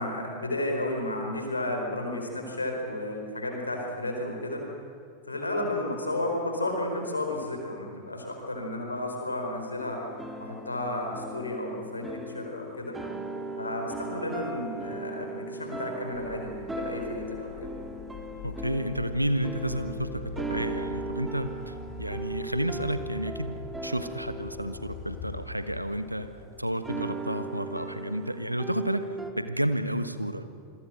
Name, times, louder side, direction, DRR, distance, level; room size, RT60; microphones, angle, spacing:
voice 1, 0.0-4.7 5.3-10.0 10.4-13.0 13.6-17.7, left 1 dB, 80° left, 2 dB, 4.6 m, -32 dB
sound 1, 9.8-26.2 26.8-29.3, right 2 dB, 10° right, 2.3 m, -38 dB
sound 2, 16.1-26.4, left 4 dB, 40° left, 4.0 m, -44 dB
voice 2, 18.4-23.6 23.8-26.3 26.6-29.1 29.4-30.4, right 1 dB, 90° right, 11 dB, 1.2 m, -31 dB
27.5 x 22.0 x 6.5 m, 2.3 s
figure-of-eight pair, 90°, 0 cm